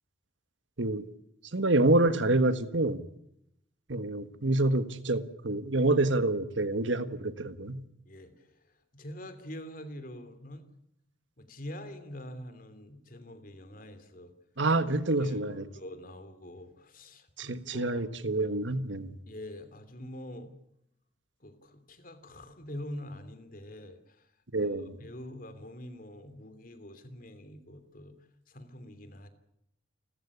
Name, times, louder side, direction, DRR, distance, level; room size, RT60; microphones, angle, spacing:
voice 1, 1.5-3.0 3.9-7.8 14.6-15.6 17.4-19.1 24.5-24.9, right 2 dB, 80° right, 1.5 m, -27 dB
voice 2, 8.0-10.7 11.4-14.3 15.2-18.1 19.3-20.6 21.4-24.3 24.6-24.7 25.0-28.2 28.5-29.3, left 1 dB, 45° left, 3.0 m, -45 dB
29.5 x 14.0 x 8.4 m
head